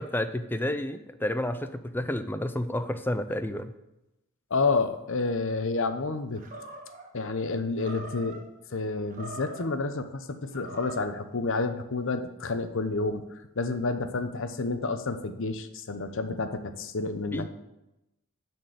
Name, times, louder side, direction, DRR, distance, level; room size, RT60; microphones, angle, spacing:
voice 1, 0.0-3.7 17.3-17.5, left 1 dB, 10° left, 10 dB, 0.4 m, -30 dB
voice 2, 4.5-6.4 7.1-8.4 8.7-13.2 13.6-17.5, left 3 dB, 60° left, 9 dB, 0.8 m, -29 dB
Animal, 6.4-7.1 7.8-8.4 9.0-9.8 10.5-11.2, right 2 dB, 40° right, 1.3 m, -43 dB
9.7 x 4.5 x 7.6 m, 0.92 s
head